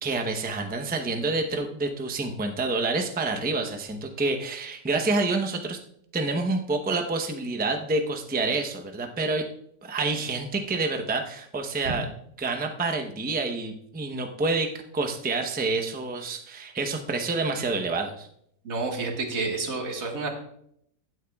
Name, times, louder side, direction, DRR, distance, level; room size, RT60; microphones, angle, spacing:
voice 1, 0.0-5.8 6.1-9.4 9.8-12.1 12.4-18.3, right 3 dB, 10° right, 4 dB, 0.5 m, -28 dB
voice 2, 18.6-20.3, right 3 dB, 55° right, 1 dB, 2.1 m, -29 dB
15.5 x 9.2 x 2.4 m, 0.70 s
omnidirectional pair, 1.8 m